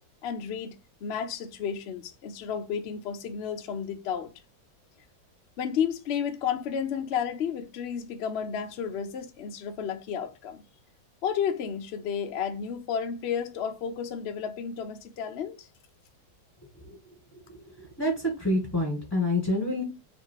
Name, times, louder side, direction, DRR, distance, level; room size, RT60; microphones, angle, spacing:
voice 1, 0.2-4.3 5.6-10.6 11.2-15.7, left 7 dB, 90° left, 0.5 m, -32 dB
voice 2, 17.5-19.8, left 1 dB, 10° left, 1.4 m, -27 dB
3.2 x 2.9 x 4.5 m
omnidirectional pair, 2.0 m